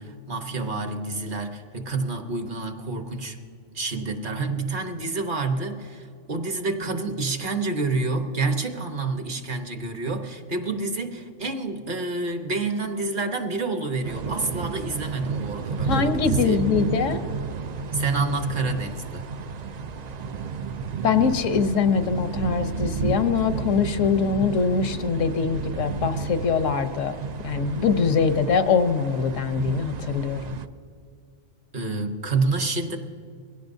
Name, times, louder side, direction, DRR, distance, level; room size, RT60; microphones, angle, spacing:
voice 1, 0.0-3.4 3.7-16.6 17.9-19.3 31.7-33.0, right 3 dB, 45° right, 5 dB, 1.1 m, -28 dB
sound 1, 14.0-30.7, right 5 dB, 65° right, 0.4 m, -31 dB
voice 2, 15.9-17.2 21.0-27.1 27.4-30.5, left 6 dB, 80° left, 9 dB, 1.2 m, -23 dB
21.5 x 16.5 x 2.7 m, 2.3 s
omnidirectional pair, 1.3 m